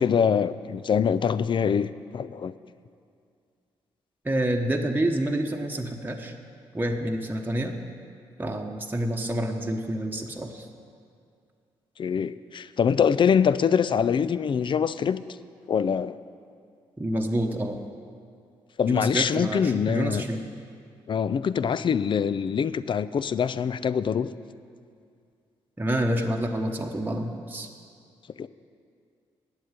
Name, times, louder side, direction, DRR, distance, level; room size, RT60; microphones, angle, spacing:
voice 1, 0.0-2.5 12.0-15.2 15.7-16.2 18.8-20.2 21.1-24.3 28.4-28.5, left 7 dB, 45° left, 16 dB, 0.4 m, -24 dB
voice 2, 4.2-6.3 6.7-7.7 8.4-10.7 17.0-17.8 18.9-20.4 25.8-27.7, right 1 dB, 15° right, 2 dB, 1.1 m, -28 dB
8.7 x 7.8 x 9.0 m, 2.3 s
supercardioid pair, 55°, 11 cm